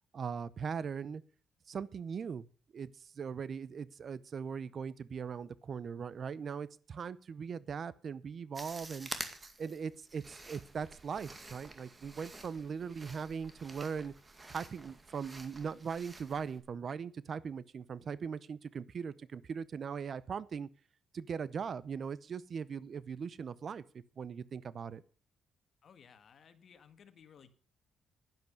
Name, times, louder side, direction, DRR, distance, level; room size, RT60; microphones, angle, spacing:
voice 1, 0.1-1.2 1.7-2.5 2.7-9.1 9.6-14.1 14.5-20.7 21.1-23.8 24.2-25.0, right 6 dB, 50° right, 19 dB, 0.6 m, -40 dB
sound 1, 8.5-16.6, right 2 dB, 25° right, 2.0 m, -49 dB
voice 2, 25.8-27.5, left 7 dB, 55° left, 10 dB, 1.6 m, -58 dB
11.0 x 10.5 x 6.6 m, 0.41 s
cardioid pair, 90°, 0 cm